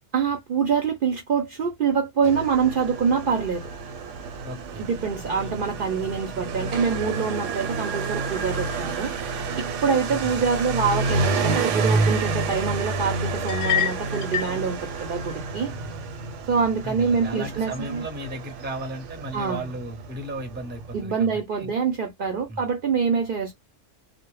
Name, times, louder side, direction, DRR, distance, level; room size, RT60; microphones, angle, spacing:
voice 1, 0.1-3.7 4.8-9.1 9.6-15.7 16.5-18.0 19.3-19.7 20.9-23.6, right 6 dB, 55° right, 0.6 m, -25 dB
Motorcycle, 2.2-21.0, right 3 dB, 80° right, 0.9 m, -29 dB
voice 2, 4.4-4.9 10.1-10.4 16.8-21.7 22.5-22.6, right 1 dB, 10° right, 0.5 m, -35 dB
sound 1, 13.5-14.6, left 10 dB, 65° left, 0.7 m, -26 dB
2.1 x 2.0 x 3.0 m
omnidirectional pair, 1.3 m